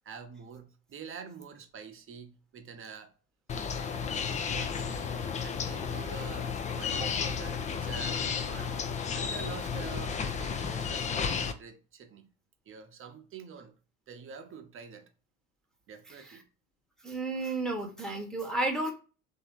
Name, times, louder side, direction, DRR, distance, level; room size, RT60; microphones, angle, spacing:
voice 1, 0.0-3.1 3.9-8.8 9.1-12.3 12.7-13.7 14.1-15.1 15.9-16.5, right 6 dB, 30° right, 0.9 m, -46 dB
sound 1, 3.5-11.5, left 6 dB, 20° left, 0.4 m, -33 dB
voice 2, 17.0-18.9, right 2 dB, ahead, 1.0 m, -32 dB
3.2 x 2.8 x 4.5 m
figure-of-eight pair, 65°, 43 cm